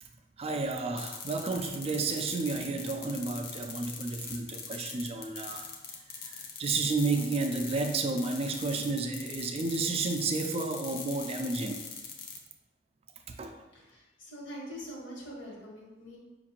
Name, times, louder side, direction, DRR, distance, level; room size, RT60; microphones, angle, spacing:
voice 1, 0.4-5.6 6.3-11.8 13.4-13.5, right 3 dB, 30° right, 5 dB, 0.3 m, -31 dB
sound 1, 1.0-12.4, left 6 dB, 50° left, 0.6 m, -42 dB
voice 2, 13.7-16.2, equal, 75° left, -4 dB, 1.3 m, -44 dB
5.4 x 2.5 x 2.8 m, 1.1 s
head